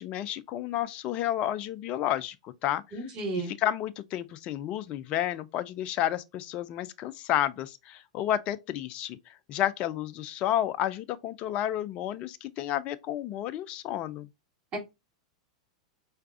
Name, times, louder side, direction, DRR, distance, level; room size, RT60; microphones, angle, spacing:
voice 1, 0.0-3.0 3.3-14.3, left 12 dB, 40° left, 0.4 m, -31 dB
voice 2, 2.9-3.5 14.7-14.8, right 2 dB, 35° right, 2.2 m, -32 dB
4.6 x 3.3 x 2.4 m
figure-of-eight pair, 95°, 3 cm